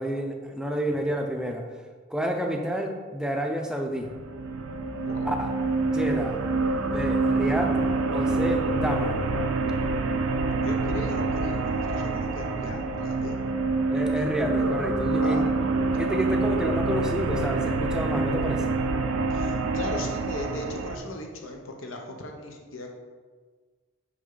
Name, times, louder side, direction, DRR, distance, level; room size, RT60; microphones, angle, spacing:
voice 1, 0.0-1.6 2.1-4.1 5.2-5.5 5.8-6.4 6.9-7.8 8.1-9.3 13.9-15.4 15.9-18.8, equal, 5° right, 3 dB, 0.5 m, -29 dB
sound 1, 4.0-21.0, right 3 dB, 85° right, 0.6 m, -26 dB
voice 2, 5.0-5.3 10.4-13.3 15.2-15.4 19.3-22.9, left 1 dB, 75° left, 2 dB, 1.0 m, -38 dB
6.2 x 5.5 x 3.9 m, 1.5 s
head